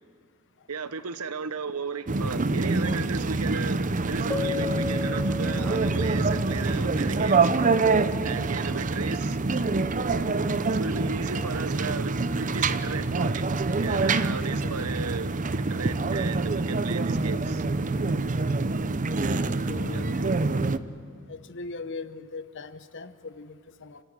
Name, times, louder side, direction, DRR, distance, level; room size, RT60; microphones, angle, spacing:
voice 1, 0.7-7.8 8.2-9.4 10.7-13.5 13.8-17.7 19.9-20.1, right 5 dB, 85° right, 1.0 m, -35 dB
sound 1, 2.1-20.8, right 3 dB, 35° right, 0.6 m, -26 dB
Keyboard (musical), 4.3-6.7, left 4 dB, 10° left, 0.8 m, -34 dB
voice 2, 19.1-20.3 21.3-24.0, left 4 dB, 55° left, 1.1 m, -40 dB
29.0 x 13.5 x 10.0 m
head